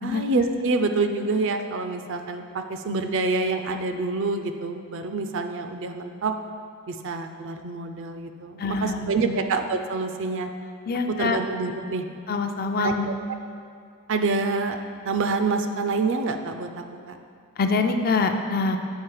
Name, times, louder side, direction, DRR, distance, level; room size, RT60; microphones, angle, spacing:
voice 1, 0.0-6.3 6.9-10.5 11.2-12.1 12.8-13.1 14.1-14.8 15.0-17.2, right 3 dB, 60° right, 7 dB, 0.5 m, -27 dB
voice 2, 8.6-9.4 10.9-11.4 12.3-13.1 17.6-18.8, left 3 dB, 45° left, 6 dB, 0.4 m, -25 dB
7.4 x 5.1 x 4.7 m, 2.4 s
head